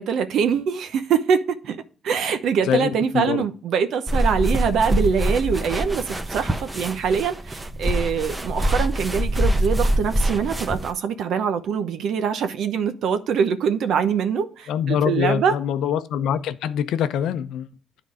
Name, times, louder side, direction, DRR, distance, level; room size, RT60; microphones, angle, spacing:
voice 1, 0.0-1.8 2.0-15.6, right 7 dB, 75° right, 0.9 m, -23 dB
voice 2, 2.7-3.4 14.7-17.7, left 9 dB, 80° left, 0.6 m, -24 dB
sound 1, 4.1-10.9, right 1 dB, 20° right, 0.9 m, -24 dB
10.0 x 4.0 x 4.8 m
supercardioid pair, 65°, 0 cm